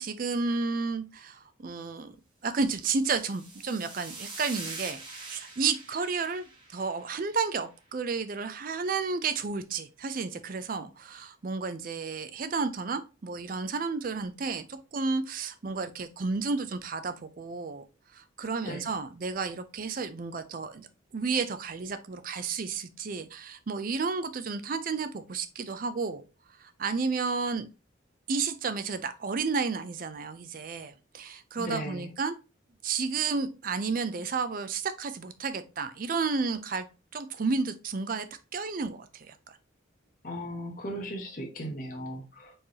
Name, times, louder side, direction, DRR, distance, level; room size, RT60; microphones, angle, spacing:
voice 1, 0.0-2.2 2.4-17.8 18.1-20.9 21.1-26.2 26.6-27.7 28.3-32.4 32.8-36.9 37.1-38.3 38.5-39.6, right 4 dB, 45° right, 11 dB, 0.4 m, -32 dB
sound 1, 2.9-7.4, right 3 dB, 25° right, 1.3 m, -44 dB
voice 2, 31.6-32.1 40.2-42.5, equal, 45° left, 0 dB, 0.9 m, -37 dB
4.4 x 3.3 x 2.8 m, 0.30 s
head